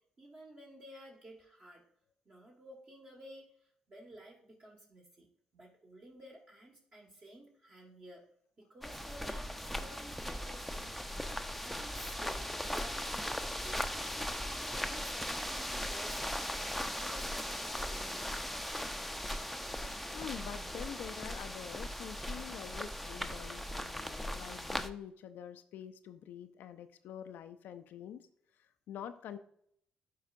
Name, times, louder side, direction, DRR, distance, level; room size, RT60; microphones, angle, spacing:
voice 1, 0.2-1.8 2.2-3.5 3.9-5.3 5.5-8.2 8.6-9.5 9.8-11.2 11.6-16.4 17.0-18.6, equal, 40° right, -3 dB, 1.7 m, -53 dB
sound 1, 8.8-24.9, equal, ahead, 0.6 m, -38 dB
voice 2, 19.8-28.3 28.6-29.4, left 9 dB, 60° left, 9 dB, 0.4 m, -46 dB
12.0 x 4.8 x 2.5 m, 0.68 s
figure-of-eight pair, 40°, 3 cm